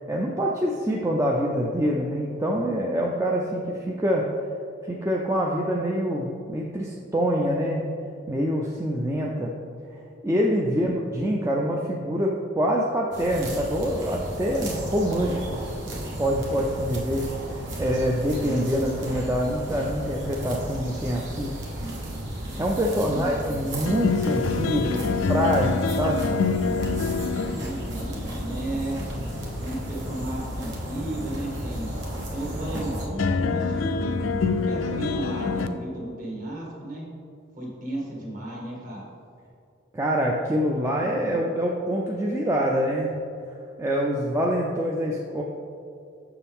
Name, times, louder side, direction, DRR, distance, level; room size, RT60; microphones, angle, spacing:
voice 1, 0.0-4.3 4.8-7.9 8.3-9.5 10.2-21.6 22.6-25.0 25.3-26.2 39.9-43.1 43.8-45.4, equal, 15° right, -2 dB, 0.4 m, -25 dB
sound 1, 13.1-33.1, right 1 dB, 60° right, 1.2 m, -34 dB
voice 2, 23.0-23.6 27.5-28.2 28.5-29.0 29.6-31.9 32.3-34.1 34.6-37.1 37.5-39.1 41.3-41.4, right 1 dB, 40° right, -4 dB, 1.7 m, -34 dB
sound 2, 23.9-35.7, left 4 dB, 75° left, 0.4 m, -28 dB
7.0 x 6.1 x 3.5 m, 2.4 s
head